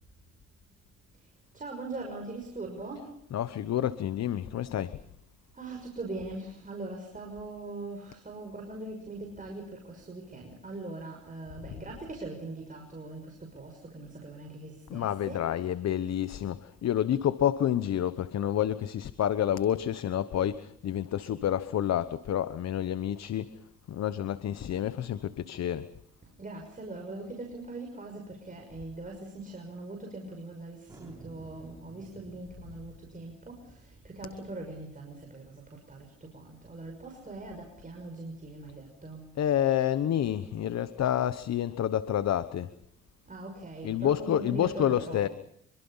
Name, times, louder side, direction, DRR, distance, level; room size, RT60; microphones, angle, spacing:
voice 1, 1.1-3.2 4.8-5.0 5.5-15.7 26.2-39.3 43.3-45.3, right 2 dB, 25° right, 1 dB, 6.0 m, -41 dB
voice 2, 3.3-5.0 14.9-23.5 23.9-25.9 39.4-42.7 43.8-45.3, left 10 dB, 60° left, 13 dB, 1.1 m, -29 dB
Thunder, 30.9-36.0, right 2 dB, 10° right, 7.5 m, -54 dB
26.5 x 24.0 x 5.6 m, 0.68 s
cardioid pair, 90°, 30 cm